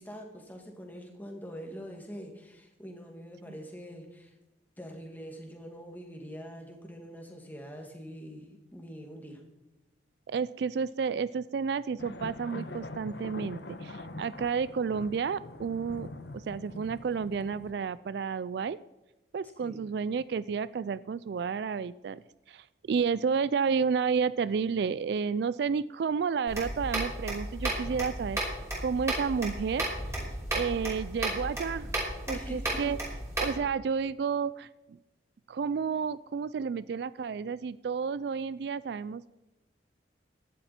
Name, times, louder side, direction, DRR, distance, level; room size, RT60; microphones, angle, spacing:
voice 1, 0.0-4.3 4.8-9.4 19.6-19.9 30.2-30.4 32.3-33.0, equal, 10° left, 2 dB, 2.2 m, -44 dB
voice 2, 10.3-18.8 19.3-22.2 22.5-29.8 30.5-31.9 32.3-33.0 33.4-34.7 35.5-39.3, right 6 dB, 60° right, 17 dB, 0.3 m, -31 dB
sound 1, 12.0-17.7, left 2 dB, 65° left, 1.1 m, -43 dB
sound 2, 26.5-33.6, right 1 dB, 15° right, 5.3 m, -34 dB
16.0 x 11.5 x 4.3 m, 1.0 s
head